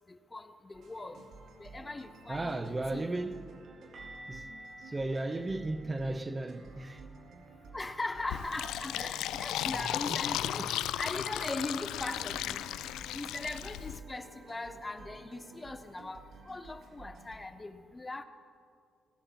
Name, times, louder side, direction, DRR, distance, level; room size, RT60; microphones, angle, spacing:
voice 1, 0.3-1.2 1.6-2.6 2.9-3.1 7.7-10.7 11.0-12.6 13.1-18.2, left 2 dB, 20° left, 0.7 m, -39 dB
sound 1, 0.7-17.4, right 4 dB, 65° right, 2.3 m, -52 dB
voice 2, 2.3-3.5 4.3-4.5 4.8-7.1 9.0-9.1 9.7-10.9, right 2 dB, 20° right, 0.7 m, -36 dB
sound 2, 3.9-9.7 10.0-10.2 10.5-10.7 13.9-14.0, right 1 dB, 45° right, 4.2 m, -54 dB
Fill (with liquid), 8.3-14.0, left 12 dB, 85° left, 0.3 m, -35 dB
20.0 x 7.1 x 5.8 m
cardioid pair, 90°, 0 cm